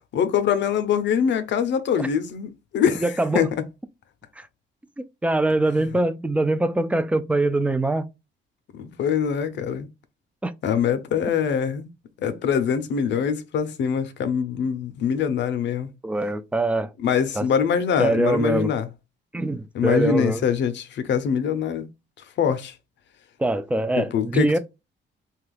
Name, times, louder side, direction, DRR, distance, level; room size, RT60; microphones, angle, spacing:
voice 1, 0.1-3.6 5.7-5.8 8.7-9.9 10.6-11.9 12.2-15.9 17.0-18.9 19.7-21.9 22.4-22.8 24.0-24.6, left 7 dB, 65° left, 0.6 m, -23 dB
voice 2, 3.0-3.5 4.4-4.5 5.2-8.1 10.4-10.5 16.0-16.9 17.4-17.5 18.0-18.7 19.3-20.4 23.4-24.6, right 2 dB, 5° right, 0.3 m, -23 dB
2.8 x 2.3 x 3.3 m
cardioid pair, 90°, 20 cm